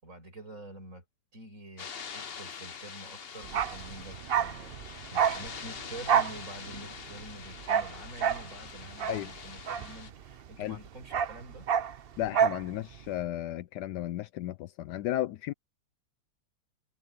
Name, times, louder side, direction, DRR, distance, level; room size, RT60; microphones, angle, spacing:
voice 1, 0.0-1.0 1.3-11.7, right 1 dB, 45° right, 7.3 m, -47 dB
sound 1, 1.8-10.1, left 7 dB, 45° left, 0.9 m, -44 dB
Bark, 3.4-10.5 10.7-12.7 12.9-13.1, right 8 dB, 65° right, 0.5 m, -29 dB
voice 2, 12.2-15.5, left 13 dB, 75° left, 1.1 m, -34 dB
omnidirectional pair, 1.9 m